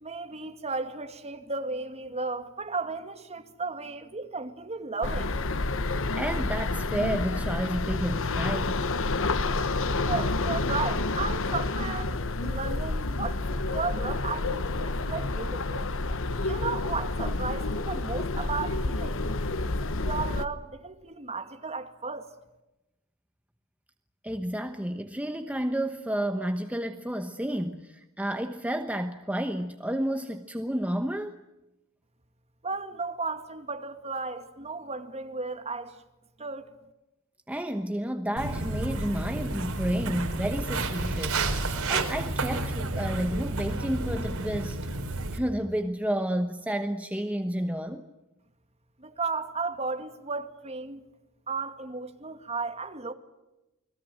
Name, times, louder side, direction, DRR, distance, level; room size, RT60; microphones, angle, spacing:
voice 1, 0.0-5.3 10.0-15.9 16.4-19.2 19.8-22.3 32.6-36.0 36.4-36.7 49.0-51.0 51.5-53.1, right 4 dB, 30° right, 2.3 m, -34 dB
sound 1, 5.0-20.4, left 2 dB, 65° left, 1.2 m, -29 dB
voice 2, 6.2-8.8 24.2-31.4 37.5-41.5 41.9-45.0 45.3-48.1, right 1 dB, 5° right, 1.1 m, -31 dB
Walk footsteps, 38.4-45.4, right 2 dB, 75° right, 4.4 m, -31 dB
29.5 x 21.5 x 7.7 m
head